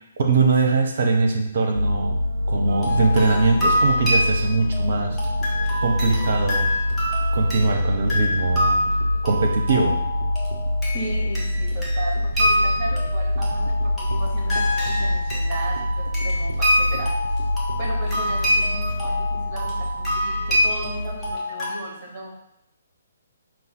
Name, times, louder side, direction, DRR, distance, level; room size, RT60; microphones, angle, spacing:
voice 1, 0.2-2.2 2.5-5.2 5.8-6.7 7.3-8.8 9.2-10.0, right 3 dB, 50° right, 3 dB, 0.8 m, -21 dB
sound 1, 1.7-21.4, left 1 dB, 85° right, 0.4 m, -25 dB
sound 2, 2.7-21.7, left 1 dB, 5° left, 1.0 m, -26 dB
voice 2, 10.9-17.5 17.8-22.3, right 2 dB, 30° right, -1 dB, 1.3 m, -36 dB
5.5 x 2.6 x 3.7 m, 0.81 s
figure-of-eight pair, 130°, 0 cm